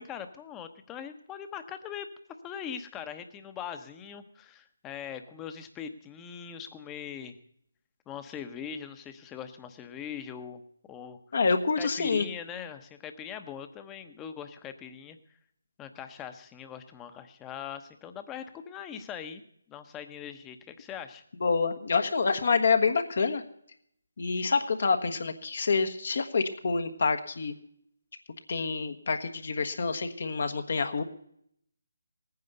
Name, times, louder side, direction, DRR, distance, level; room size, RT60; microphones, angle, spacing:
voice 1, 0.0-2.1 2.4-7.4 8.1-10.6 10.9-11.2 11.8-15.2 15.8-19.4 19.7-21.2, left 8 dB, 15° left, 9 dB, 1.0 m, -41 dB
voice 2, 11.3-12.2 21.4-23.4 24.2-27.5 28.5-31.0, left 4 dB, 55° left, 7 dB, 1.3 m, -27 dB
18.0 x 9.5 x 6.8 m, 0.70 s
figure-of-eight pair, 150°, 0 cm